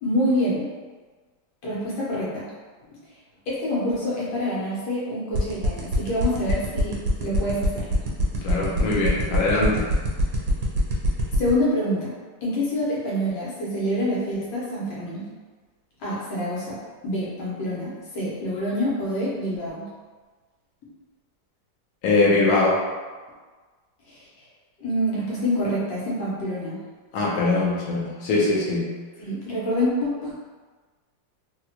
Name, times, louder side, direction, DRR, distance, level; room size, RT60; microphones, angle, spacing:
voice 1, 0.0-0.7 1.6-2.5 3.5-7.9 11.4-12.1 12.4-15.3 16.0-16.8 17.0-19.9 24.1-24.3 24.8-26.8 29.2-30.4, equal, 80° left, -7 dB, 1.7 m, -26 dB
sound 1, 5.3-11.5, right 5 dB, 65° right, 1.3 m, -26 dB
voice 2, 8.4-9.9 22.0-22.8 27.1-28.9, left 2 dB, 65° left, -5 dB, 1.0 m, -22 dB
3.6 x 2.1 x 2.8 m, 1.4 s
omnidirectional pair, 2.0 m